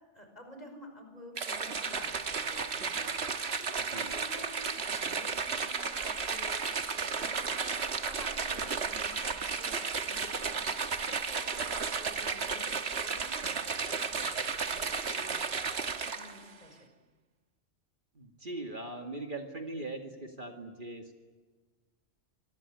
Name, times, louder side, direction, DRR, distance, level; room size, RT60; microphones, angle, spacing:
voice 1, 0.1-3.1 3.6-6.7 7.0-7.7 8.0-10.7 11.0-14.3 14.7-15.4 16.0-16.9, left 1 dB, 35° left, 5 dB, 5.5 m, -51 dB
sound 1, 1.4-16.5, right 5 dB, 60° right, 1.6 m, -33 dB
voice 2, 3.8-4.3 18.1-21.1, right 2 dB, 45° right, 3 dB, 2.4 m, -41 dB
26.0 x 20.5 x 9.9 m, 1.4 s
omnidirectional pair, 1.2 m